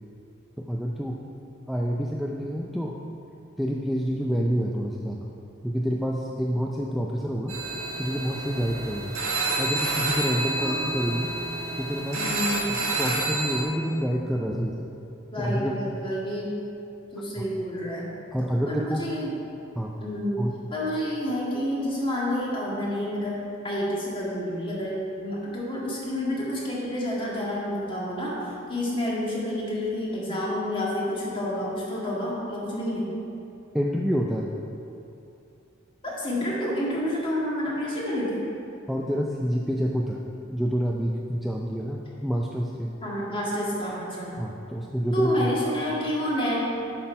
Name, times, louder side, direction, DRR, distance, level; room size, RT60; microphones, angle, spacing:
voice 1, 0.6-1.2 1.7-3.0 3.6-5.3 5.6-7.6 8.0-9.2 9.6-11.3 11.8-12.3 12.7-14.7 15.4-15.8 17.4-17.5 18.3-19.1 19.8-20.0 20.4-20.6 33.7-34.5 38.9-40.2 40.5-42.9 44.4-45.5, equal, ahead, -2 dB, 0.4 m, -28 dB
sound 1, 7.5-13.6, right 2 dB, 90° right, 1.5 m, -29 dB
voice 2, 12.1-12.8 15.3-16.5 17.1-18.1 18.7-19.3 20.0-28.3 28.7-33.1 36.0-38.4 43.0-44.3 45.1-46.7, left 1 dB, 25° left, -5 dB, 1.9 m, -29 dB
8.1 x 6.0 x 5.6 m, 2.8 s
head